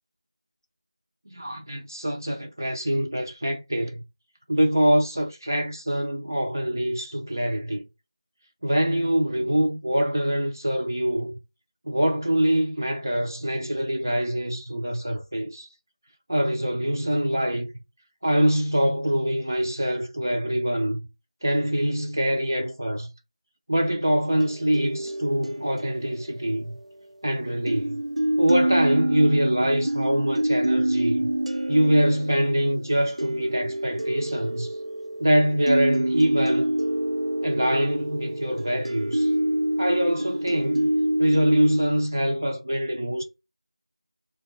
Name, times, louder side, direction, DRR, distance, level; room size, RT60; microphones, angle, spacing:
voice 1, 1.3-4.0 4.5-7.9 8.6-11.4 11.9-15.7 16.3-17.7 18.2-21.1 21.4-23.1 23.7-26.8 27.2-28.0 28.4-31.3 31.7-34.7 35.2-36.7 37.4-39.3 39.8-40.9 41.2-43.2, equal, 30° right, 0.4 m, -24 dB
sound 1, 24.4-27.2 27.7-41.8, right 1 dB, 90° right, 0.6 m, -27 dB
3.8 x 2.3 x 2.6 m
figure-of-eight pair, 175°, 3 cm